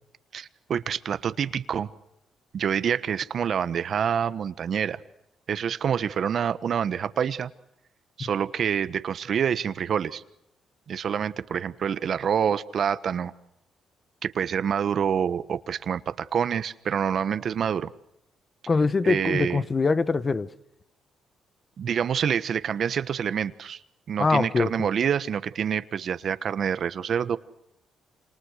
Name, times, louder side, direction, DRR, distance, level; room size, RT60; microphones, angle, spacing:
voice 1, 0.3-1.9 2.5-5.0 5.5-7.5 8.2-10.2 10.9-13.3 14.2-17.9 19.0-19.6 21.8-23.8 24.1-27.4, right 8 dB, 55° right, 1.2 m, -27 dB
voice 2, 18.7-20.5 24.2-24.9, left 4 dB, 30° left, 1.1 m, -23 dB
27.5 x 27.5 x 6.5 m
cardioid pair, 90°, 0 cm